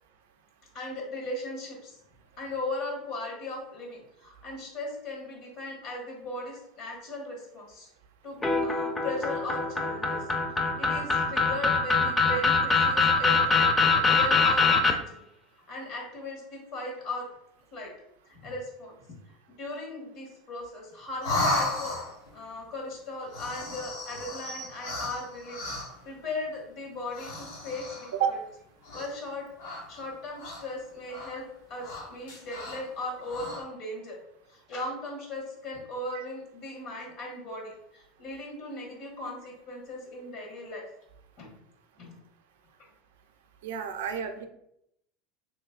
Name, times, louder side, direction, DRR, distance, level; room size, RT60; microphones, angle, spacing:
voice 1, 0.7-2.0 2.4-7.9 8.2-10.2 10.6-13.7 14.0-15.0 15.7-17.3 17.7-17.9 18.2-19.0 19.3-22.0 22.3-25.7 26.0-28.4 28.9-29.5 29.9-34.2 34.5-40.8 41.4-41.5 42.0-42.2, left 2 dB, 60° left, -1 dB, 1.4 m, -38 dB
sound 1, 8.4-14.9, left 4 dB, 20° left, 0.4 m, -23 dB
sound 2, 21.2-22.3 23.2-26.1 27.1-28.2 28.8-29.3 29.6-30.8 31.1-31.3 31.8-32.8 33.2-33.6, left 2 dB, 85° left, 1.2 m, -34 dB
voice 2, 43.6-44.5, right 8 dB, 85° right, 6 dB, 0.4 m, -30 dB
3.1 x 3.0 x 2.4 m, 0.76 s
supercardioid pair, 100°, 0 cm